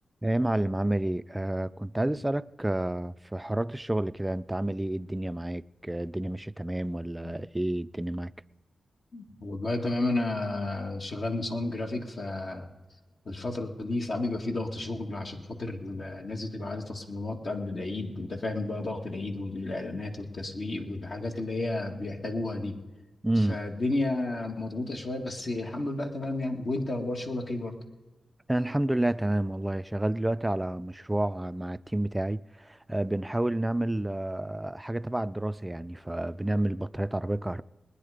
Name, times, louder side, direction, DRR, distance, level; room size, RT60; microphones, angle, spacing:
voice 1, 0.2-8.3 23.2-23.6 28.5-37.6, right 1 dB, 15° right, 0.4 m, -29 dB
voice 2, 9.1-12.7 13.3-22.8 23.5-27.7, left 2 dB, 60° left, 2.0 m, -32 dB
21.0 x 9.9 x 5.0 m
cardioid pair, 60°, 0 cm